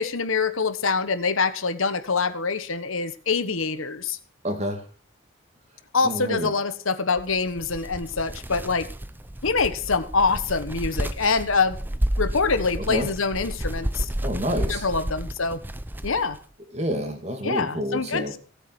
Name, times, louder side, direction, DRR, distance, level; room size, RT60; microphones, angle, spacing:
voice 1, 0.0-4.2 5.9-8.9 9.4-11.8 12.2-14.1 14.7-15.6 16.0-16.4 17.4-18.4, left 4 dB, 80° left, 11 dB, 1.3 m, -25 dB
voice 2, 4.4-4.8 6.0-6.5 12.8-13.1 14.2-14.9 16.7-18.4, equal, 30° right, 6 dB, 2.5 m, -28 dB
sound 1, 7.2-16.4, right 1 dB, 10° right, 0.5 m, -31 dB
16.5 x 8.3 x 6.1 m, 0.39 s
head